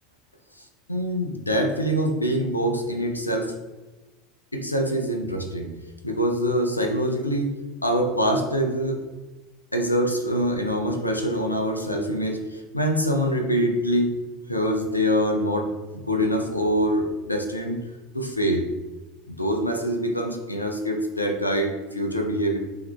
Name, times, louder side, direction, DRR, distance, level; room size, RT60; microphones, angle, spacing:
voice 1, 0.9-3.5 4.5-5.7 6.0-7.5 7.8-9.0 9.7-14.1 14.5-17.8 18.1-18.7 19.3-22.6, equal, 90° left, 3 dB, 0.5 m, -24 dB
3.8 x 3.1 x 4.4 m, 1.1 s
figure-of-eight pair, 75°, 0 cm